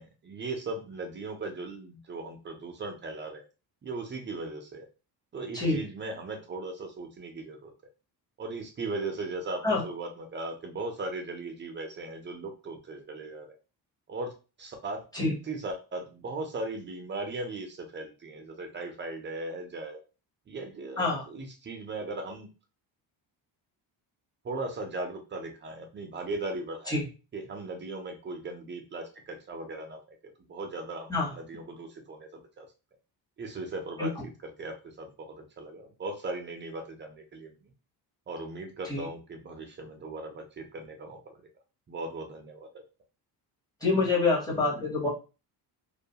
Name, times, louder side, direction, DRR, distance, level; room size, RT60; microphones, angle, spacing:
voice 1, 0.0-3.4 3.8-4.8 5.3-7.7 8.4-13.6 14.1-14.3 14.6-15.0 15.4-20.0 20.5-22.5 24.4-26.9 27.3-30.0 30.5-32.7 33.4-37.7 38.3-41.4 41.9-42.7, right 2 dB, 30° right, 4 dB, 0.4 m, -38 dB
voice 2, 43.8-45.1, left 3 dB, 10° left, -4 dB, 0.8 m, -26 dB
2.4 x 2.2 x 2.7 m, 0.32 s
cardioid pair, 155°, 42 cm